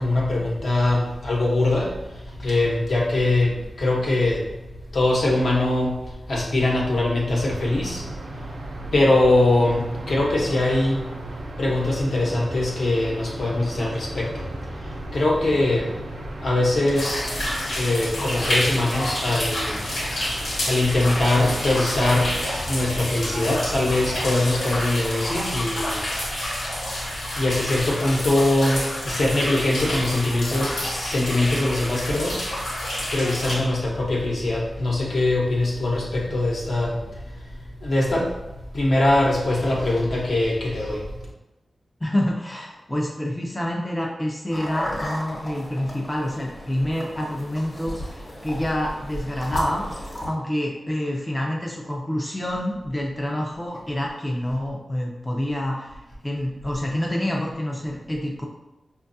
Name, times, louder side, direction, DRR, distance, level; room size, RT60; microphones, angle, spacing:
voice 1, 0.0-4.5 4.9-6.0 6.3-8.1 8.9-11.0 11.6-14.5 14.8-15.9 16.4-19.8 20.6-22.4 22.6-26.1 27.4-32.8 33.1-37.2 37.8-38.3 38.7-41.1, left 2 dB, 60° left, -2 dB, 0.8 m, -22 dB
som exterior cidade, 7.3-24.5, right 2 dB, 90° right, 0.7 m, -37 dB
sound 1, 17.0-33.6, left 1 dB, 85° left, 1.0 m, -29 dB
voice 2, 42.0-58.4, left 1 dB, 15° left, -1 dB, 0.4 m, -27 dB
sound 2, 44.5-50.3, equal, 30° left, 0.9 m, -33 dB
5.2 x 2.3 x 2.6 m, 1.0 s
wide cardioid pair, 130°, 0 cm